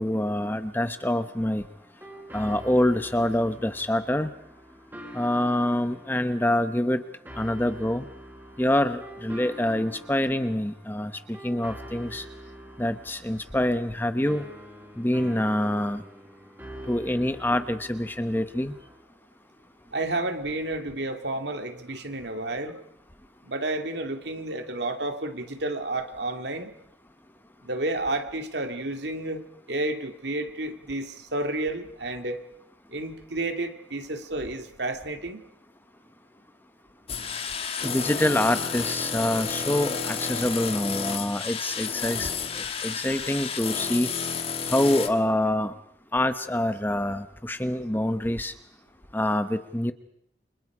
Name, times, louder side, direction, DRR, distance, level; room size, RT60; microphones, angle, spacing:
voice 1, 0.0-1.6 2.3-4.3 5.1-7.0 7.4-8.1 8.6-12.3 12.8-14.5 15.0-16.0 16.9-18.7 37.8-42.3 42.6-44.1 44.6-45.7 46.1-48.5 49.1-49.9, left 1 dB, 10° left, 10 dB, 0.9 m, -26 dB
sound 1, 1.0-19.0, right 1 dB, 10° right, 4.6 m, -45 dB
voice 2, 19.9-22.8 23.4-26.7 27.6-29.4 29.7-32.4 32.9-35.4, right 2 dB, 70° right, 6 dB, 2.3 m, -31 dB
sound 2, 37.1-45.1, left 6 dB, 30° left, 1.6 m, -31 dB
29.5 x 25.5 x 5.0 m, 0.71 s
head